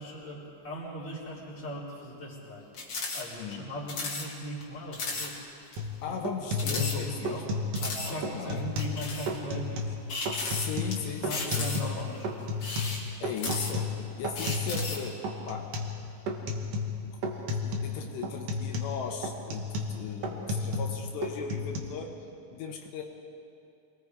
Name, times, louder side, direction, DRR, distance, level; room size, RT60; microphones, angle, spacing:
voice 1, 0.0-2.7 3.1-5.4 6.1-6.2 6.6-7.5 7.8-10.0 10.2-10.4 11.2-12.5, equal, 15° left, -6 dB, 3.9 m, -39 dB
sound 1, 2.7-3.2 3.5-3.6 3.9-4.3 4.6-4.7 4.9-5.3 5.7-5.8 6.5-7.4 7.7-8.1 8.8-9.3 10.1-10.9 11.3-12.0 12.5-13.9 14.3-15.1, left 3 dB, 40° left, 2.5 m, -35 dB
sound 2, 5.8-5.9 6.2-8.0 8.2-9.0 9.3-10.0 10.3-12.0 12.2-15.0 15.2-16.0 16.3-17.0 17.2-17.9 18.2-21.0 21.2-21.8, left 2 dB, 50° right, 2.0 m, -32 dB
voice 2, 6.0-7.4 8.1-8.7 10.3-12.1 13.2-15.9 17.6-22.1 22.5-23.0, left 6 dB, 80° left, 2 dB, 3.4 m, -38 dB
26.0 x 20.5 x 4.8 m, 2.7 s
omnidirectional pair, 5.0 m